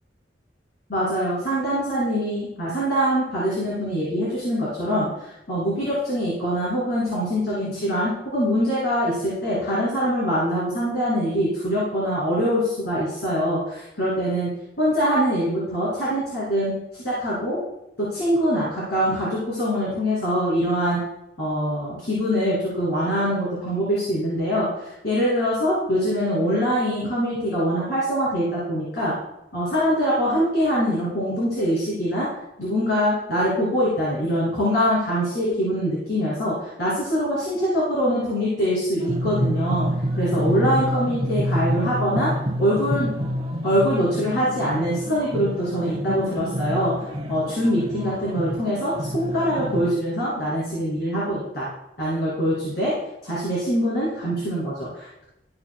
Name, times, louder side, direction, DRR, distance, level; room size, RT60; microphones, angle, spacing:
voice 1, 0.9-14.5 14.8-17.6 18.0-21.0 21.4-29.1 29.5-32.3 32.6-42.3 42.6-43.1 43.6-51.7 52.0-52.9 53.2-55.2, equal, 65° left, -8 dB, 2.6 m, -23 dB
sound 1, 39.0-49.9, equal, 35° right, 1.0 m, -28 dB
12.5 x 6.8 x 2.2 m, 0.89 s
head